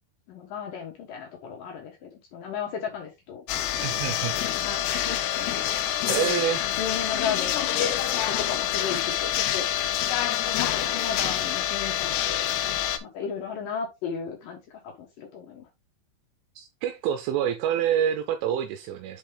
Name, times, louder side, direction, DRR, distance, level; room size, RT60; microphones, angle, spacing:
voice 1, 0.3-3.5 4.6-9.7 10.4-12.5 13.0-15.7, left 6 dB, 70° left, 2.1 m, -35 dB
sound 1, 3.5-13.0, left 11 dB, 85° left, 2.3 m, -27 dB
voice 2, 3.8-4.7 6.1-6.7 16.6-19.2, right 10 dB, 80° right, 3.0 m, -27 dB
7.4 x 4.7 x 3.4 m
omnidirectional pair, 5.8 m